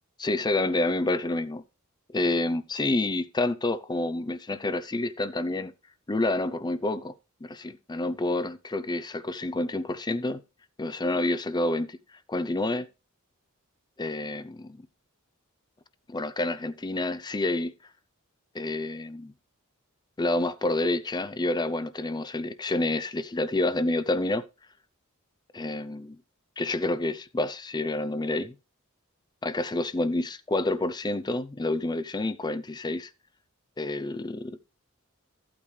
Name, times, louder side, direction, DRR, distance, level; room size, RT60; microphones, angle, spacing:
voice 1, 0.2-1.6 2.1-5.7 6.1-7.1 7.4-10.4 10.8-12.0 12.3-12.9 14.0-14.9 16.1-17.7 18.5-19.3 20.2-24.4 25.5-26.2 26.6-28.5 29.4-33.1 33.8-34.6, left 2 dB, 20° left, 0.5 m, -28 dB
14.0 x 8.7 x 3.2 m
head